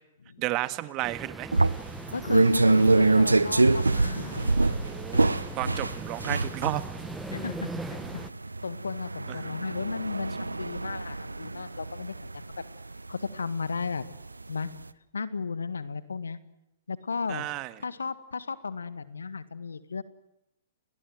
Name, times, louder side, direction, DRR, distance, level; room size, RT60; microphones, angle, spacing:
voice 1, 0.4-1.5 4.8-6.8 9.3-9.4 17.3-17.7, right 18 dB, 35° right, 13 dB, 1.8 m, -32 dB
sound 1, 1.0-8.3, right 3 dB, 5° right, 0.9 m, -40 dB
sound 2, 1.5-14.2 14.5-14.8, right 2 dB, 90° right, 1.0 m, -25 dB
voice 2, 2.1-4.4 7.3-8.0 8.6-12.4 13.1-14.0 14.5-14.7 15.1-16.4 16.9-17.5 17.8-20.0, left 5 dB, 80° left, 14 dB, 1.7 m, -34 dB
30.0 x 21.0 x 7.9 m, 0.88 s
figure-of-eight pair, 115°, 0 cm